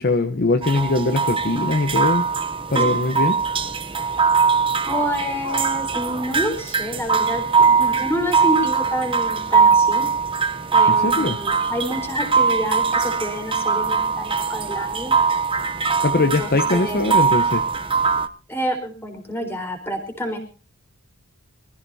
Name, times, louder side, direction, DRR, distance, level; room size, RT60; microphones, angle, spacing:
voice 1, 0.0-2.2 2.7-3.3 10.9-11.4 16.0-17.6, left 2 dB, 45° left, 6 dB, 0.9 m, -21 dB
sound 1, 0.6-18.3, right 5 dB, 25° right, 0.7 m, -21 dB
voice 2, 4.9-10.1 10.7-15.1 16.1-16.5 16.8-17.0 18.5-20.4, equal, 10° left, 4 dB, 4.1 m, -28 dB
25.0 x 14.5 x 2.8 m, 0.35 s
head